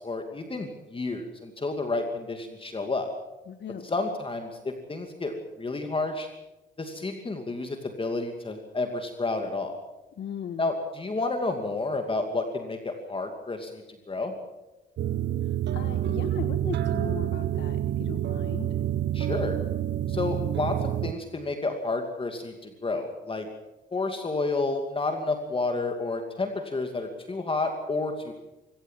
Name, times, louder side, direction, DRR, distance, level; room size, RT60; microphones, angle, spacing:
voice 1, 0.0-3.1 3.8-6.3 6.8-9.8 10.6-13.8 14.1-14.3 19.1-19.6 20.1-23.5 23.9-28.3, left 3 dB, 25° left, 5 dB, 2.6 m, -30 dB
voice 2, 3.5-3.9 10.2-10.7 15.4-18.7, left 8 dB, 65° left, 8 dB, 1.5 m, -38 dB
sound 1, 15.0-21.1, right 11 dB, 60° right, 1.0 m, -28 dB
24.5 x 16.0 x 7.6 m, 1.0 s
cardioid pair, 90°, 20 cm